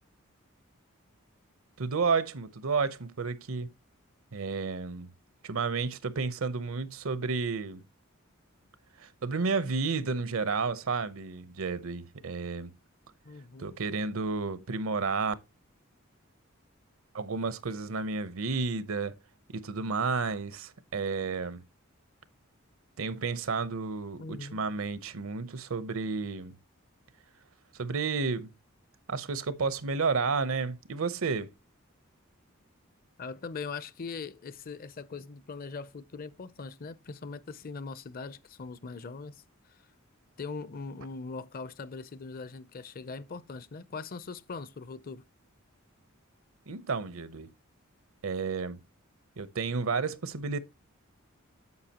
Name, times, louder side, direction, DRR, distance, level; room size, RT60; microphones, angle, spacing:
voice 1, 1.8-3.7 4.3-5.1 5.4-7.8 9.0-12.7 13.6-15.3 17.1-19.2 19.5-21.6 23.0-26.6 27.7-28.5 29.1-31.5 46.7-47.5 48.2-48.8 49.4-50.6, right 4 dB, 75° right, 0.8 m, -31 dB
voice 2, 13.2-13.8 24.2-24.6 33.2-39.4 39.7-39.8 40.4-45.2, left 4 dB, 45° left, 0.6 m, -41 dB
9.6 x 7.2 x 2.9 m
head